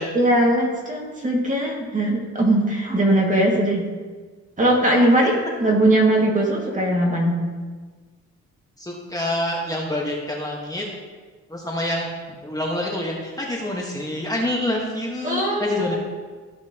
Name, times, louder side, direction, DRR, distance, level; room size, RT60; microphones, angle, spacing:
voice 1, 0.1-3.8 4.6-7.4 15.2-16.0, right 1 dB, 25° right, -2 dB, 2.1 m, -20 dB
voice 2, 8.8-10.9 11.5-12.1 12.4-15.9, left 1 dB, 10° left, -2 dB, 1.5 m, -27 dB
14.0 x 5.8 x 3.0 m, 1.4 s
cardioid pair, 90°, 30 cm